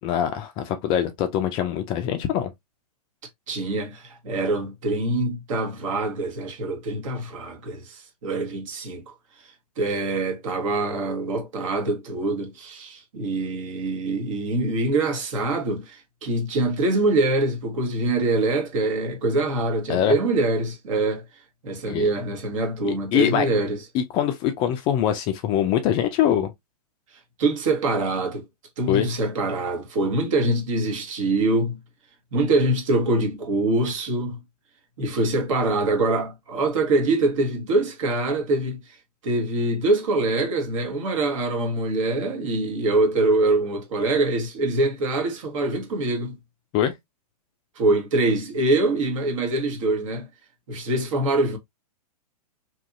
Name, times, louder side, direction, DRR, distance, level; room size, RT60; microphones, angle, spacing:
voice 1, 0.0-2.5 19.9-20.1 21.9-22.0 22.8-23.5 23.9-26.5 28.9-29.1 46.7-46.9, left 10 dB, 25° left, 0.4 m, -23 dB
voice 2, 3.5-9.1 9.8-21.2 21.6-23.8 27.4-28.5 28.8-31.8 32.3-34.4 35.0-38.8 39.2-46.4 47.8-50.3 50.7-51.6, right 2 dB, 55° right, 1.1 m, -24 dB
2.8 x 2.6 x 2.5 m
figure-of-eight pair, 115°, 20 cm